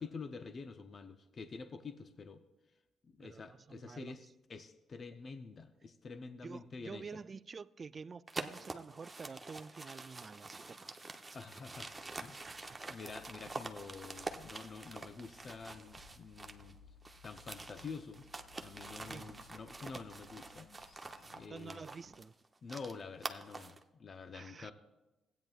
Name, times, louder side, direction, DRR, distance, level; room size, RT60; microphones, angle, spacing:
voice 1, 0.0-2.4 3.1-7.0 11.3-12.5 12.9-16.8 17.2-18.3 18.6-20.7 21.3-21.9 22.6-24.7, left 4 dB, 45° left, 0.6 m, -48 dB
voice 2, 3.2-4.2 6.4-10.9 12.4-12.9 19.0-19.4 21.5-22.3 24.3-24.7, right 5 dB, 40° right, 0.3 m, -49 dB
sound 1, 8.3-16.7 17.0-23.8, right 3 dB, 25° right, 0.8 m, -47 dB
sound 2, 11.5-22.2, left 4 dB, 75° left, 1.7 m, -63 dB
15.5 x 9.1 x 2.4 m
supercardioid pair, 60°, 0 cm